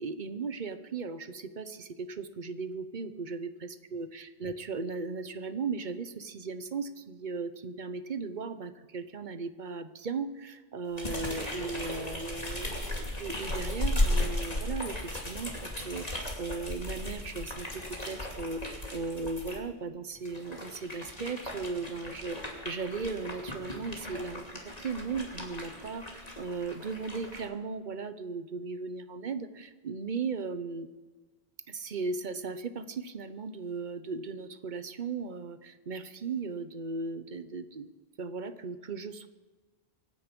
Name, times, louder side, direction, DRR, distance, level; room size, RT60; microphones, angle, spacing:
voice 1, 0.0-24.4 24.8-30.9 31.7-37.9 38.2-39.3, right 4 dB, 50° right, 12 dB, 1.0 m, -37 dB
sound 1, 11.0-19.6 20.2-27.5, left 1 dB, 40° left, 2.6 m, -36 dB
24.5 x 9.5 x 5.3 m, 1.3 s
omnidirectional pair, 1.0 m